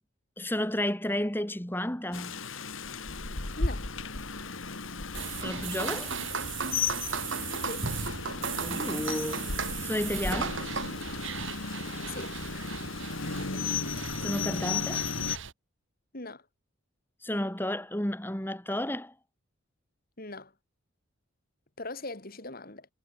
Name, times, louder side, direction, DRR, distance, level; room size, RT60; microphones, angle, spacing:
voice 1, 0.4-2.4 5.4-6.2 8.6-9.5 9.8-10.6 14.2-15.1 17.2-19.1, left 1 dB, 10° left, 2.1 m, -32 dB
Rain, 2.1-15.4, left 4 dB, 70° left, 2.4 m, -35 dB
voice 2, 3.6-3.9 7.6-7.9 12.0-12.4 16.1-16.4 20.2-20.5 21.8-22.9, left 2 dB, 45° left, 3.0 m, -40 dB
sound 1, 5.1-15.5, right 6 dB, 65° right, 1.9 m, -36 dB
head